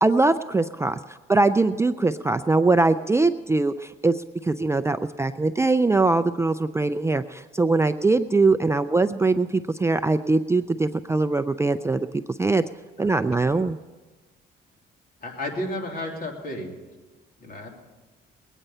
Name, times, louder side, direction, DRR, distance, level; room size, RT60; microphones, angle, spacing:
voice 1, 0.0-12.6 13.0-13.8, right 3 dB, 15° right, 9 dB, 0.4 m, -22 dB
voice 2, 13.3-13.7 15.2-16.7 17.4-17.7, left 1 dB, 45° left, 1 dB, 3.2 m, -33 dB
21.0 x 9.1 x 5.5 m, 1.2 s
cardioid pair, 90°, 20 cm